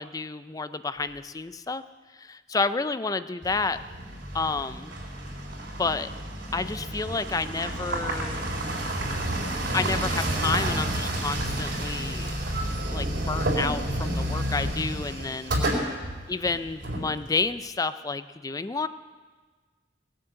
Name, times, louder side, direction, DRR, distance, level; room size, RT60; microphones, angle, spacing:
voice 1, 0.0-1.8 2.1-3.8 4.3-4.9 5.8-6.1 6.5-8.5 9.7-12.3 12.9-16.0 16.3-18.9, left 4 dB, 20° left, 13 dB, 0.4 m, -30 dB
sound 1, 3.4-17.6, right 1 dB, 60° right, 3.8 m, -30 dB
19.0 x 7.6 x 7.7 m, 1.4 s
head